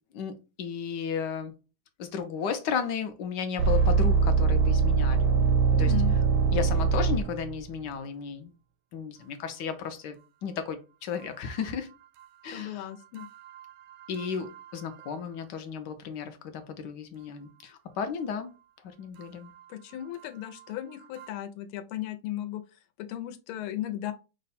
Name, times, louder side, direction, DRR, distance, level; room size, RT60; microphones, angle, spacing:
voice 1, 0.1-1.5 2.0-5.3 5.7-5.9 6.5-8.5 8.9-11.9 12.4-12.9 14.1-18.5 19.0-19.5, left 6 dB, 70° left, 1.1 m, -34 dB
sound 1, 3.6-7.6 13.2-14.6 14.9-15.1 21.2-21.3, right 5 dB, 75° right, 1.3 m, -23 dB
voice 2, 5.8-6.1 12.5-13.3 19.7-22.6 23.0-24.1, left 12 dB, 85° left, 1.5 m, -36 dB
5.5 x 2.1 x 4.1 m
omnidirectional pair, 2.3 m